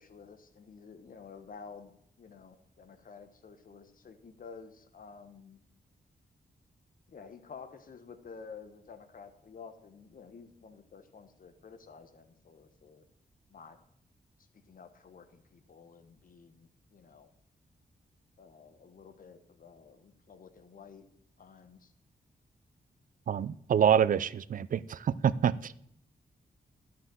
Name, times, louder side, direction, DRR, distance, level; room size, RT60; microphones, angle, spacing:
voice 1, 0.0-5.6 7.1-13.0 13.5-13.8 14.5-17.3 18.4-21.1 21.4-21.9, left 5 dB, 55° left, 1.1 m, -51 dB
voice 2, 23.3-25.7, right 8 dB, 55° right, 0.4 m, -26 dB
11.5 x 5.9 x 7.5 m
wide cardioid pair, 165°, 17 cm